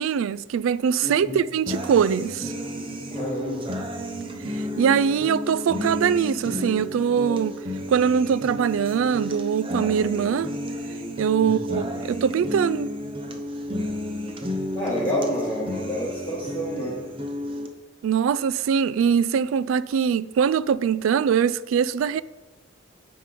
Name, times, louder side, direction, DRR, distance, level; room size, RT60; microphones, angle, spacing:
voice 1, 0.0-2.5 4.5-7.6 7.9-10.5 11.2-12.9 18.0-22.2, right 7 dB, 85° right, 0.3 m, -22 dB
voice 2, 1.0-1.4 3.1-3.7 11.4-11.8 14.7-17.0, equal, 20° left, 1.8 m, -29 dB
sound 1, 1.7-17.7, left 1 dB, 25° right, 0.7 m, -32 dB
9.0 x 5.2 x 5.1 m
head